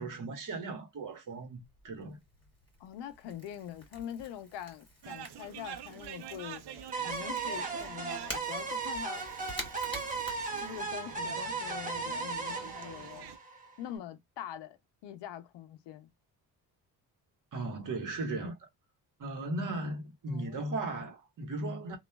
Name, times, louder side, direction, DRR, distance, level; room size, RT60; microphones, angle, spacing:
voice 1, 0.0-2.2 17.5-18.7 19.2-22.0, right 2 dB, 50° right, 1.2 m, -37 dB
Crackle / Crack, 1.6-11.2, equal, 10° left, 1.8 m, -48 dB
voice 2, 2.8-6.6 7.0-9.2 10.5-13.3 13.8-16.1 20.3-20.7, left 10 dB, 90° left, 0.6 m, -44 dB
sound 1, 5.0-13.4, right 9 dB, 75° right, 0.6 m, -47 dB
sound 2, 6.9-13.9, right 4 dB, 20° right, 1.0 m, -36 dB
2.9 x 2.3 x 2.2 m
cardioid pair, 90°, 40 cm